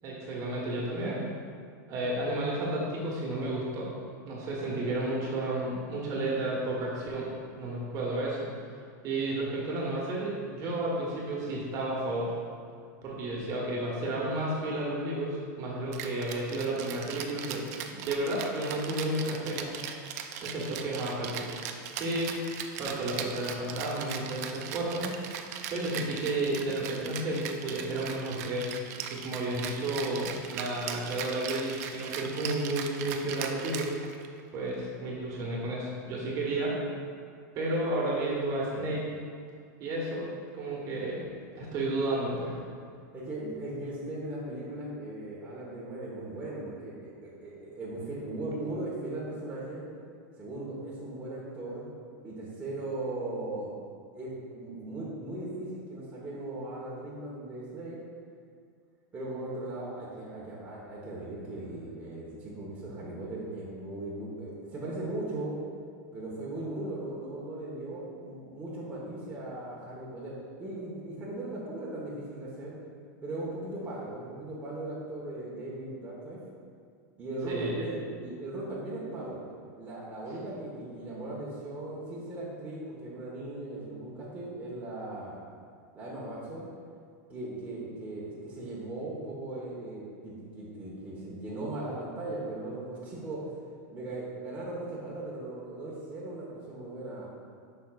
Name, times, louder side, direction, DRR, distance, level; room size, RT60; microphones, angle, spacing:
voice 1, 0.0-1.2 1.9-3.9 4.2-7.3 7.6-8.4 9.0-12.3 13.0-19.7 20.4-21.5 22.0-25.1 25.7-28.8 29.1-33.9 34.5-36.8 37.5-39.0 39.8-41.3 41.6-42.6 77.5-77.7, right 1 dB, 35° right, -4 dB, 1.4 m, -32 dB
Rattle (instrument), 15.9-34.4, right 8 dB, 60° right, 0.5 m, -39 dB
voice 2, 43.1-49.8 50.4-51.8 52.2-53.7 54.1-58.0 59.1-65.6 66.1-72.7 73.2-76.4 77.2-79.4 79.8-85.4 85.9-86.7 87.3-93.6 93.9-97.3, right 2 dB, 15° right, -7 dB, 1.3 m, -38 dB
8.4 x 5.6 x 2.5 m, 2.1 s
supercardioid pair, 145°, 10 cm